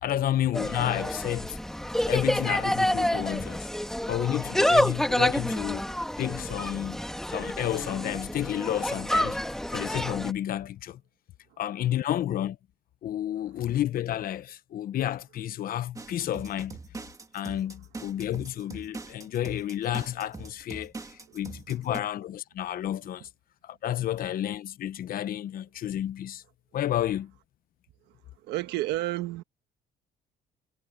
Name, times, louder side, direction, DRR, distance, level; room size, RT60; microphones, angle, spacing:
voice 1, 0.0-1.6 2.1-3.7 4.1-5.8 6.2-7.0 7.3-9.4 9.7-11.0 11.6-12.6 13.0-16.8 17.3-20.9 21.3-23.3 23.6-26.4 26.7-27.3, left 12 dB, 60° left, 1.1 m, -31 dB
Insect, 0.5-10.3, equal, 5° left, 1.8 m, -28 dB
sound 1, 16.0-22.0, right 3 dB, 20° right, 2.1 m, -42 dB
voice 2, 28.5-29.4, right 16 dB, 85° right, 1.3 m, -30 dB
cardioid pair, 110°, 17 cm